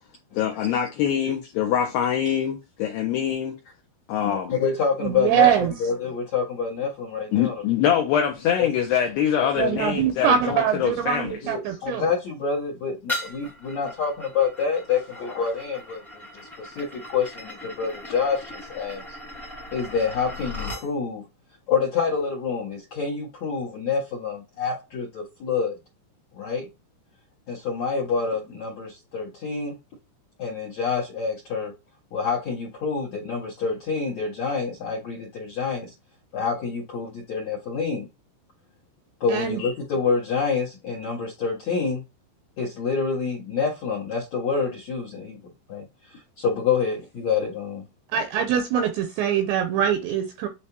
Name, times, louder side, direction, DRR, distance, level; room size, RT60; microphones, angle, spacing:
voice 1, 0.3-3.6 4.1-4.5 7.3-11.4, left 9 dB, 85° left, 2.3 m, -24 dB
voice 2, 4.2-7.6 8.6-8.7 9.4-9.5 11.4-19.2 19.7-21.2 21.7-25.8 26.3-26.7 27.5-29.8 30.4-31.7 32.1-35.9 36.3-38.1 39.2-42.0 42.6-45.4 45.7-47.8, left 5 dB, 65° left, 1.7 m, -27 dB
voice 3, 5.0-5.7 9.6-12.1 39.3-39.6 48.1-50.5, right 9 dB, 85° right, 2.5 m, -23 dB
sound 1, 13.1-20.9, left 2 dB, ahead, 0.4 m, -38 dB
9.6 x 3.4 x 2.9 m
omnidirectional pair, 5.8 m